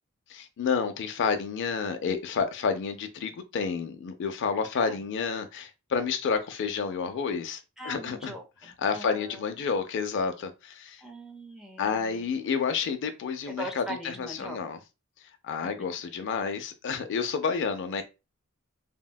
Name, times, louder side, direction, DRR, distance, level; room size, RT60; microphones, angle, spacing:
voice 1, 0.3-8.3 8.6-11.0 11.8-14.8 15.4-18.0, left 5 dB, 55° left, 0.4 m, -30 dB
voice 2, 7.8-9.4 11.0-12.3 13.5-14.6, right 1 dB, ahead, 0.5 m, -41 dB
3.5 x 2.1 x 2.2 m
head